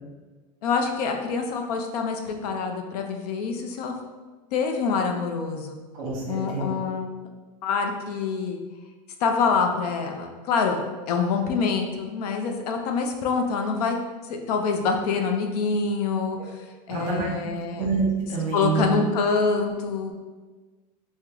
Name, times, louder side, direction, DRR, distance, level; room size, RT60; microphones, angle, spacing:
voice 1, 0.6-4.0 4.5-5.8 6.3-7.1 7.6-8.6 9.2-10.8 11.1-14.0 14.3-17.9 18.5-20.1, left 5 dB, 80° left, 4 dB, 0.5 m, -26 dB
voice 2, 5.9-6.7 16.9-17.3 17.7-18.9, right 4 dB, 40° right, -3 dB, 0.9 m, -27 dB
3.6 x 2.1 x 2.9 m, 1.3 s
supercardioid pair, 175°, 20 cm